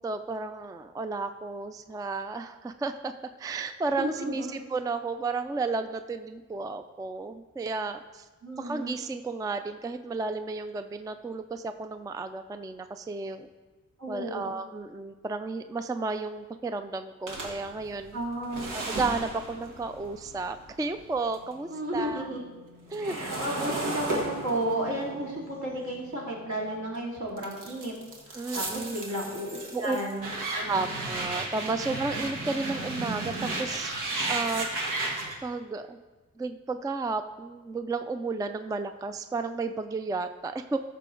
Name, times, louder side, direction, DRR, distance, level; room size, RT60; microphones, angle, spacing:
voice 1, 0.0-8.3 8.6-13.5 14.1-18.2 18.7-22.3 22.9-23.2 28.3-29.2 29.7-30.0 30.7-34.0 34.3-34.7 35.4-36.0 36.4-40.8, right 3 dB, 10° right, 9 dB, 0.3 m, -33 dB
voice 2, 4.0-4.5 8.4-8.9 14.0-14.5 18.1-18.7 21.7-22.4 23.0-27.9 28.3-30.3 30.5-30.8, right 1 dB, 70° right, -3 dB, 2.7 m, -33 dB
sound 1, 17.3-21.5 21.9-26.8 27.4-35.4, right 2 dB, 90° right, 1.6 m, -34 dB
14.0 x 6.7 x 3.8 m, 1.3 s
wide cardioid pair, 105°, 30 cm